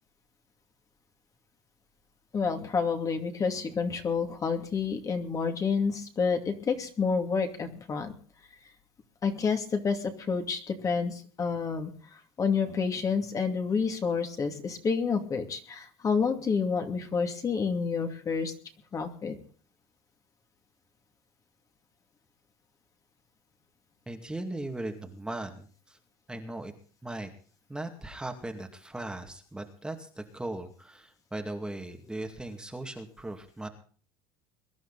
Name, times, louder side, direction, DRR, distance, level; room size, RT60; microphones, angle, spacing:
voice 1, 2.3-8.1 9.2-18.5 18.9-19.4, left 5 dB, 30° left, 5 dB, 2.5 m, -29 dB
voice 2, 24.1-26.0 26.3-26.7 27.0-27.3 27.7-33.7, right 2 dB, 5° right, 4 dB, 2.2 m, -38 dB
22.5 x 11.5 x 4.1 m, 0.42 s
supercardioid pair, 125°, 12 cm